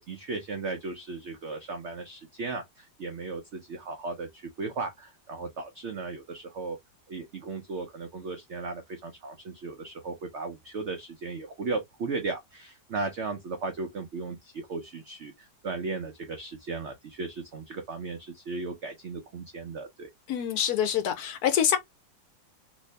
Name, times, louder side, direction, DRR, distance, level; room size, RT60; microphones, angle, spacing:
voice 1, 0.0-6.8 7.1-20.1, right 3 dB, 90° right, 0.6 m, -36 dB
voice 2, 20.3-21.8, left 9 dB, 70° left, 1.0 m, -25 dB
3.0 x 2.7 x 3.2 m
omnidirectional pair, 2.0 m